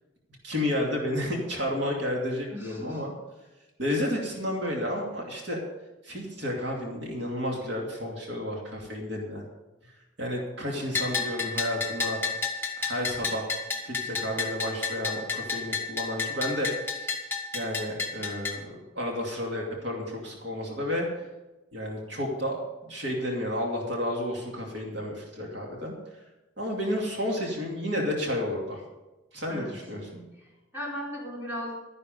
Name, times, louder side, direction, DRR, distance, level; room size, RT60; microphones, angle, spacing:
voice 1, 0.4-3.1 3.8-5.6 6.0-9.4 10.2-12.2 12.8-13.4 13.8-17.2 17.5-21.1 21.7-25.9 26.6-28.8 29.3-30.2, left 1 dB, 65° right, -1 dB, 2.5 m, -31 dB
voice 2, 2.5-3.0 29.5-29.8 30.4-31.7, equal, 10° right, -5 dB, 4.3 m, -37 dB
Bell, 10.9-18.6, left 4 dB, 10° left, 1.7 m, -31 dB
12.5 x 10.5 x 5.4 m, 1.1 s
head